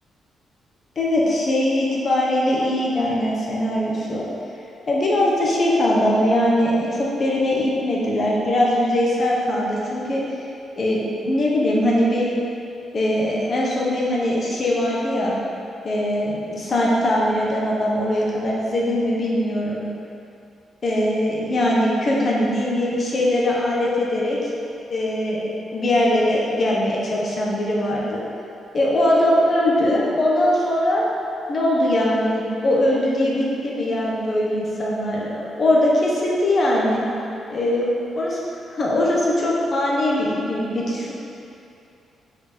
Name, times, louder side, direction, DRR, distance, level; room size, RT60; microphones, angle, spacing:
voice 1, 1.0-4.2 4.9-10.2 10.7-12.3 12.9-15.3 15.8-19.8 20.8-24.5 24.9-28.2 28.7-31.1 31.5-37.0 37.5-38.4 38.7-41.1, left 1 dB, 40° left, -4 dB, 1.1 m, -21 dB
4.5 x 4.5 x 5.1 m, 2.7 s
cardioid pair, 135°, 0 cm